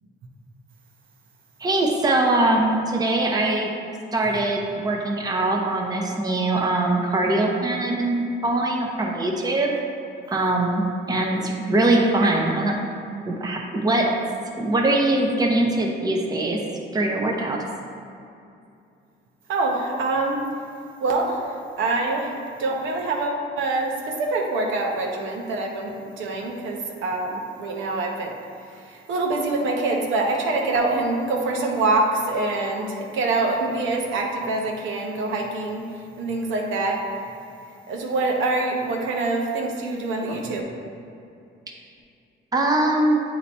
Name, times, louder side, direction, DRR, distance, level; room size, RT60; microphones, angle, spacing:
voice 1, 1.6-3.7 4.1-9.8 10.3-10.8 11.1-12.8 13.2-14.1 14.6-16.6 16.9-17.6 42.5-43.2, right 2 dB, 20° right, 0 dB, 0.8 m, -22 dB
voice 2, 19.5-20.4 21.0-28.3 28.7-37.0 37.9-40.6, right 2 dB, 80° right, 0 dB, 0.9 m, -25 dB
8.4 x 2.9 x 4.2 m, 2.5 s
cardioid pair, 90°, 20 cm